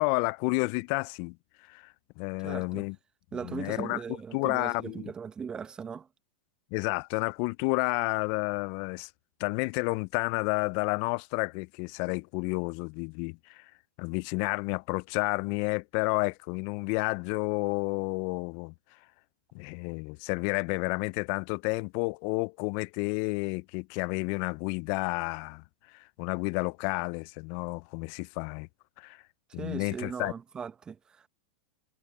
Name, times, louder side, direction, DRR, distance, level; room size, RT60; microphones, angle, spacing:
voice 1, 0.0-1.4 1.7-3.0 3.4-4.0 4.3-5.1 6.7-9.1 9.4-13.7 14.0-18.7 19.5-28.7 29.0-29.2 29.5-30.3, left 31 dB, 50° left, 0.5 m, -31 dB
voice 2, 2.4-2.8 3.3-6.1 29.6-31.3, right 6 dB, 20° right, 1.0 m, -39 dB
hypercardioid pair, 110°, 4 cm